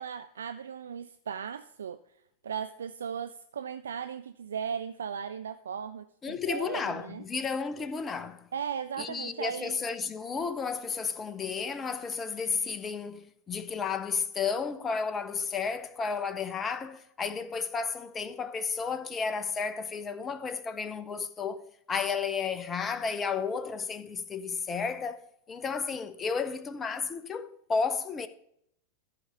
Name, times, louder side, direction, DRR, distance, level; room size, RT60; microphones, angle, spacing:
voice 1, 0.0-2.0 2.4-7.3 8.5-9.8, right 7 dB, 65° right, 0.3 m, -37 dB
voice 2, 6.2-8.5 9.0-25.2 25.5-28.3, left 5 dB, 20° left, 0.6 m, -32 dB
13.5 x 4.7 x 5.5 m
figure-of-eight pair, 90°, 0 cm